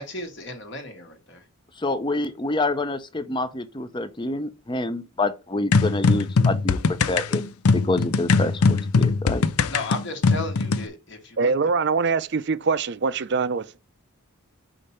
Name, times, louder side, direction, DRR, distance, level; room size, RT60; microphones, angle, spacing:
voice 1, 0.0-1.4 9.7-11.5, left 2 dB, 50° left, 1.2 m, -34 dB
voice 2, 1.8-7.4 7.7-9.4, left 2 dB, 20° left, 0.5 m, -27 dB
sound 1, 5.7-10.9, left 4 dB, 85° left, 0.5 m, -21 dB
voice 3, 11.4-13.7, right 4 dB, 50° right, 0.5 m, -23 dB
5.1 x 4.2 x 5.6 m
head